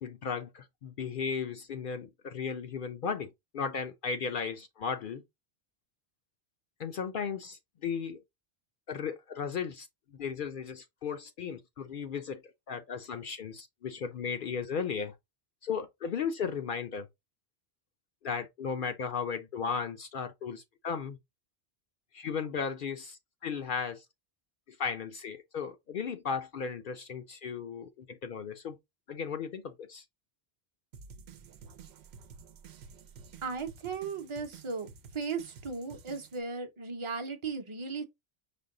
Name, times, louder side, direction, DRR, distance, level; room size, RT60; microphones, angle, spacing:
voice 1, 0.0-5.2 6.8-8.2 8.9-15.1 15.6-17.1 18.2-21.2 22.1-24.1 24.7-28.8 29.1-30.0, left 6 dB, 60° left, 0.6 m, -36 dB
sound 1, 30.9-36.4, right 5 dB, 85° right, 0.9 m, -51 dB
voice 2, 33.4-34.9 35.1-38.0, right 4 dB, 35° right, 0.7 m, -36 dB
5.2 x 2.2 x 3.7 m
omnidirectional pair, 1.0 m